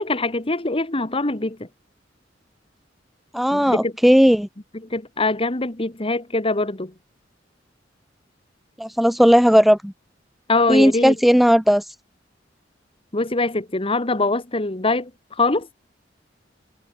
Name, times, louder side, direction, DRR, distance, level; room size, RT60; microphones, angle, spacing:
voice 1, 0.0-1.7 3.5-3.9 4.9-6.9 10.5-11.2 13.1-15.1 15.4-15.7, left 2 dB, 30° left, 1.7 m, -23 dB
voice 2, 3.3-4.5 8.8-9.9 10.7-11.8, equal, ahead, 0.9 m, -16 dB
head